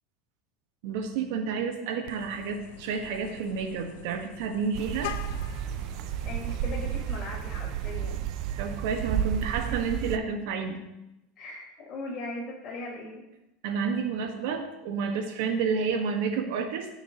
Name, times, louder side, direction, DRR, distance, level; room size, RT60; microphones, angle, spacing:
voice 1, 0.8-5.1 8.6-10.8 13.6-16.9, right 5 dB, 70° right, 5 dB, 1.5 m, -30 dB
Vehicle horn car horn honking, 2.1-7.2, left 11 dB, 75° left, 0.5 m, -44 dB
sound 1, 4.7-10.2, right 10 dB, 50° right, 0.5 m, -32 dB
voice 2, 6.2-8.3 9.6-9.8 10.0-10.3 11.4-13.2, left 2 dB, 30° left, -4 dB, 4.6 m, -39 dB
19.5 x 6.6 x 3.0 m, 0.92 s
supercardioid pair, 155°, 0 cm